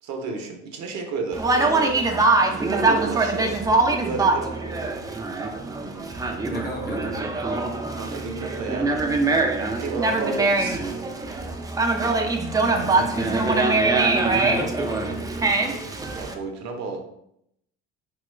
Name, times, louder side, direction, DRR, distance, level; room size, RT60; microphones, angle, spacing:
voice 1, 0.0-2.1 2.7-4.8 8.0-9.4 9.8-10.8 16.2-17.0, right 4 dB, 65° right, 3 dB, 0.7 m, -32 dB
Conversation, 1.3-16.3, right 3 dB, 10° right, 0.3 m, -23 dB
voice 2, 6.5-7.5 12.6-15.3, left 1 dB, 30° left, 2 dB, 0.7 m, -35 dB
2.8 x 2.3 x 3.1 m, 0.75 s
supercardioid pair, 90°, 31 cm